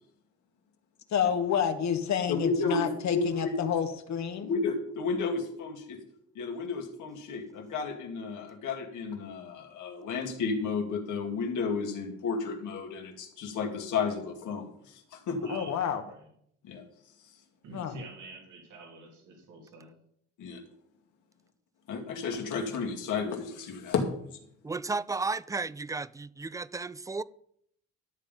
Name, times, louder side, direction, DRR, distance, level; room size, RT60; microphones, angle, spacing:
voice 1, 1.1-4.5 15.5-16.0 17.7-18.0, left 8 dB, 65° left, 1.4 m, -29 dB
voice 2, 2.3-3.5 4.4-6.0 6.4-15.5 16.6-16.8 20.4-20.6 21.9-24.1, left 4 dB, 80° left, 2.3 m, -32 dB
voice 3, 15.4-16.3 17.6-20.0, right 3 dB, 85° right, 3.0 m, -48 dB
voice 4, 24.6-27.2, right 3 dB, 10° right, 0.3 m, -33 dB
13.0 x 7.4 x 5.3 m
cardioid pair, 90°, 30 cm